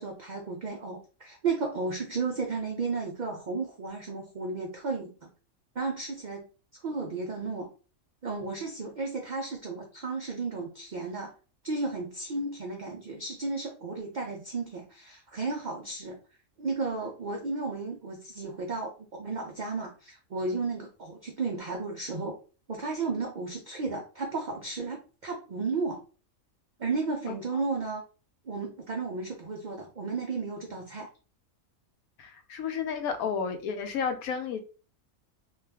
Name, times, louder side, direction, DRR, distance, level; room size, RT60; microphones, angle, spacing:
voice 1, 0.0-5.3 5.8-6.5 6.8-7.7 8.2-11.3 11.6-16.2 16.6-22.4 22.7-26.0 26.8-28.0 28.4-31.1, right 4 dB, 80° right, 1 dB, 0.4 m, -33 dB
voice 2, 32.2-34.6, left 6 dB, 85° left, 7 dB, 1.1 m, -31 dB
2.5 x 2.3 x 3.3 m, 0.37 s
omnidirectional pair, 1.5 m